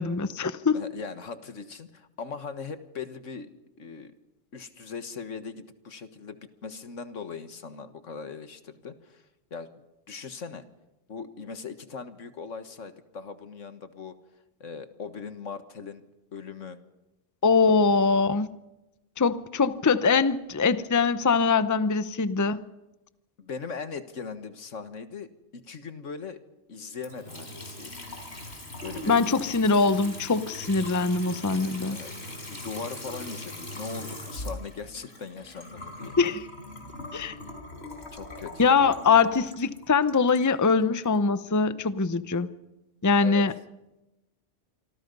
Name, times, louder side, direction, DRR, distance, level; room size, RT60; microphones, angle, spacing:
voice 1, 0.0-0.8 17.4-18.5 19.2-22.6 29.1-32.0 36.2-36.4 37.1-37.4 38.6-42.5 43.0-43.5, left 4 dB, 20° left, 13 dB, 0.6 m, -23 dB
voice 2, 0.7-3.5 3.8-4.2 4.5-9.2 9.5-9.7 10.1-10.6 11.1-14.2 14.6-16.0 16.3-16.8 23.4-26.4 26.7-27.9 28.8-29.2 31.9-32.1 32.5-36.1 38.1-39.0 43.2-43.4, left 5 dB, 75° left, 10 dB, 1.8 m, -39 dB
Water tap faucet / Sink (filling or washing) / Trickle dribble, 27.0-41.1, left 1 dB, 55° left, 4.6 m, -40 dB
26.5 x 25.0 x 5.4 m, 0.96 s
omnidirectional pair, 1.3 m